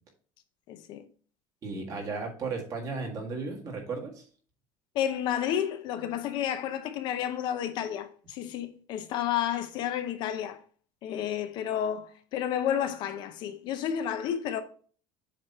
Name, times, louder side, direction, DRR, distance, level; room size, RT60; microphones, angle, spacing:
voice 1, 0.7-1.0 4.9-10.6 11.0-14.6, left 10 dB, 45° left, 0.6 m, -31 dB
voice 2, 1.6-4.2, right 4 dB, 30° right, 1.8 m, -35 dB
7.5 x 3.1 x 5.3 m
cardioid pair, 175°, 11 cm